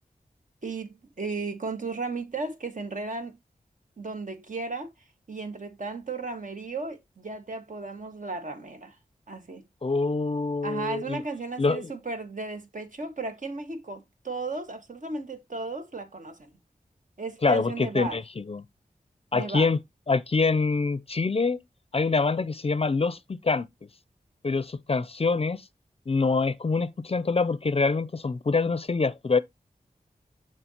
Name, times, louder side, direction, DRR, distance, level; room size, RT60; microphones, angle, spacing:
voice 1, 0.6-3.4 4.0-4.9 5.3-9.0 9.3-9.6 10.6-16.5 17.2-18.2 19.3-19.7, right 3 dB, 60° right, 1.6 m, -35 dB
voice 2, 9.8-11.2 11.6-11.9 17.4-18.6 19.3-19.8 20.1-21.6 21.9-23.7 24.4-25.6 26.1-29.4, left 4 dB, 40° left, 0.5 m, -25 dB
6.9 x 6.3 x 2.9 m
wide cardioid pair, 60°, 15 cm